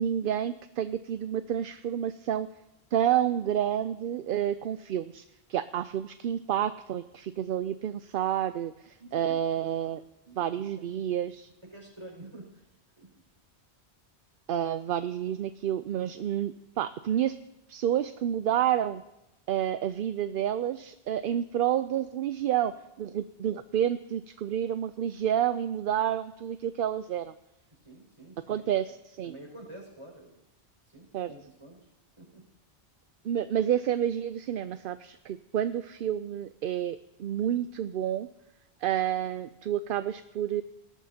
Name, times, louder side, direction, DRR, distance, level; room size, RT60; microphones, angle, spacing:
voice 1, 0.0-2.5 2.9-5.2 5.5-10.0 10.4-11.5 14.5-17.3 17.7-19.0 19.5-22.7 23.0-27.3 28.5-29.3 31.1-31.3 33.2-38.3 38.8-40.6, right 10 dB, 60° right, 12 dB, 0.7 m, -29 dB
voice 2, 9.0-10.0 10.2-10.4 11.6-12.6 13.0-13.2 27.8-28.6 29.2-30.4 30.9-31.9 32.2-32.5, right 2 dB, 25° right, -2 dB, 5.3 m, -48 dB
19.0 x 13.0 x 2.8 m, 0.91 s
omnidirectional pair, 1.1 m